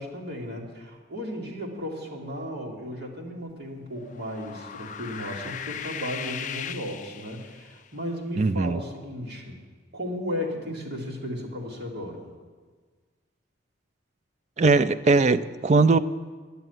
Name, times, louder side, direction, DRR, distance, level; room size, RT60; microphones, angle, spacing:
voice 1, 0.0-9.6 9.9-12.3, equal, 55° right, -2 dB, 2.3 m, -35 dB
sound 1, 4.0-7.8, left 8 dB, 40° left, 0.4 m, -37 dB
voice 2, 8.4-8.8 14.6-16.0, right 3 dB, 35° right, 13 dB, 0.3 m, -20 dB
11.0 x 7.0 x 9.3 m, 1.5 s
head